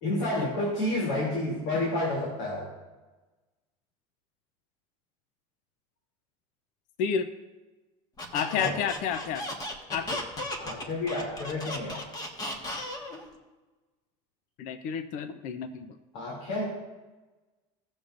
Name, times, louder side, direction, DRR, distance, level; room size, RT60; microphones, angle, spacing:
voice 1, 0.0-2.7 8.5-8.7 10.6-12.0 16.1-16.7, left 1 dB, 75° left, -3 dB, 2.8 m, -30 dB
Squeak, 8.2-13.2, left 1 dB, 25° left, 1.4 m, -35 dB
voice 2, 8.3-9.5 9.9-10.2 14.6-16.0, left 7 dB, 55° left, 10 dB, 0.6 m, -30 dB
17.0 x 7.0 x 2.5 m, 1.2 s
supercardioid pair, 130°, 16 cm